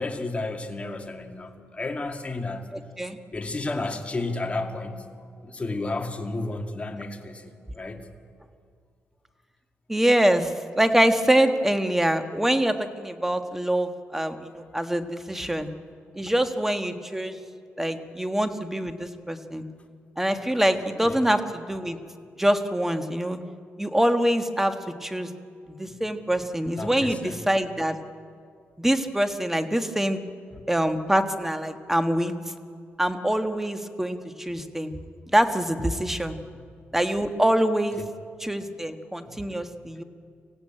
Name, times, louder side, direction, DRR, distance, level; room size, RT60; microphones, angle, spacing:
voice 1, 0.0-2.7 3.3-5.1 5.4-8.1 21.0-21.2 25.9-26.0 26.8-27.4 30.5-30.6 36.5-36.6 38.0-38.1 39.3-39.4 39.8-39.9, left 2 dB, 25° left, 3 dB, 2.2 m, -32 dB
voice 2, 2.7-3.2 9.9-15.7 16.1-17.4 17.8-19.6 20.2-22.0 22.4-23.4 23.8-24.7 25.0-25.3 25.7-28.0 28.8-30.2 30.7-32.3 33.0-34.9 35.3-36.4 36.9-38.0 38.4-40.0, right 1 dB, 5° right, 8 dB, 1.5 m, -24 dB
25.0 x 16.0 x 8.9 m, 2.2 s
cardioid pair, 95°, 5 cm